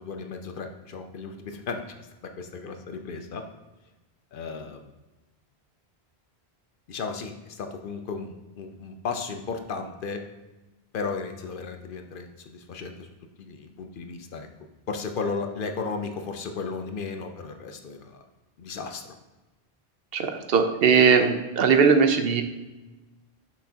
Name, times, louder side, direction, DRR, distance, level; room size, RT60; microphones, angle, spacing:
voice 1, 0.0-1.8 2.4-3.4 4.3-4.8 6.9-10.2 10.9-13.1 13.4-14.5 14.9-18.2 18.6-19.1, left 4 dB, 60° left, 6 dB, 0.7 m, -34 dB
voice 2, 20.1-22.4, right 6 dB, 70° right, 6 dB, 0.8 m, -19 dB
6.4 x 5.8 x 2.8 m, 1.1 s
omnidirectional pair, 1.1 m